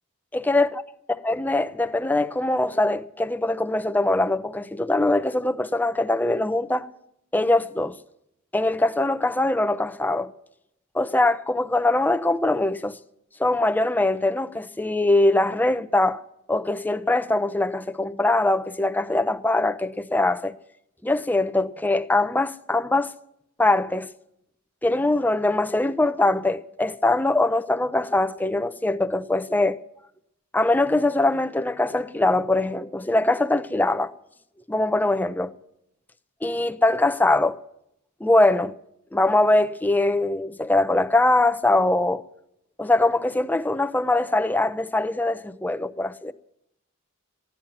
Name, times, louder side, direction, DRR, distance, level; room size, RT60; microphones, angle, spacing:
voice 1, 0.3-0.8 1.2-6.9 7.3-8.0 8.5-10.3 10.9-13.0 13.4-16.2 16.5-20.5 21.0-23.1 23.6-24.1 24.8-29.8 30.5-34.1 34.7-35.5 36.4-37.6 38.2-38.7 39.1-42.2 42.8-46.3, left 2 dB, 10° left, 0.5 m, -22 dB
15.5 x 10.5 x 7.3 m
head